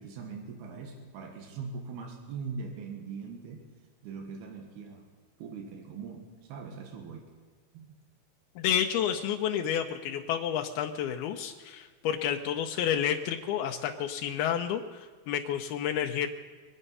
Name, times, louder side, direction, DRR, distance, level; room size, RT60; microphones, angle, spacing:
voice 1, 0.0-3.7 4.0-5.1 5.4-7.3 7.7-8.0, right 5 dB, 90° right, 4 dB, 3.4 m, -41 dB
voice 2, 8.6-16.3, left 9 dB, 85° left, 4 dB, 2.6 m, -30 dB
23.5 x 10.0 x 5.5 m, 1.5 s
omnidirectional pair, 4.4 m